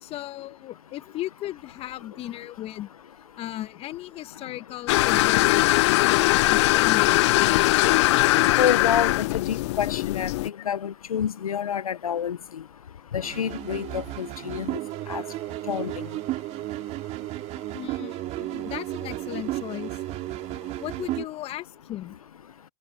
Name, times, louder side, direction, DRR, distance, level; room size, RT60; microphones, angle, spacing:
voice 1, 0.0-2.9 3.4-5.6 6.1-7.5 9.0-9.1 17.7-20.0 20.8-22.2, left 14 dB, 35° left, 1.8 m, -36 dB
sound 1, 4.9-10.5, left 20 dB, 50° left, 0.8 m, -20 dB
voice 2, 8.6-12.4 13.1-14.8 15.1-15.2 15.7-15.9, left 8 dB, 75° left, 1.1 m, -28 dB
sound 2, 13.2-21.3, right 17 dB, 35° right, 3.8 m, -33 dB
hypercardioid pair, 105°, 18 cm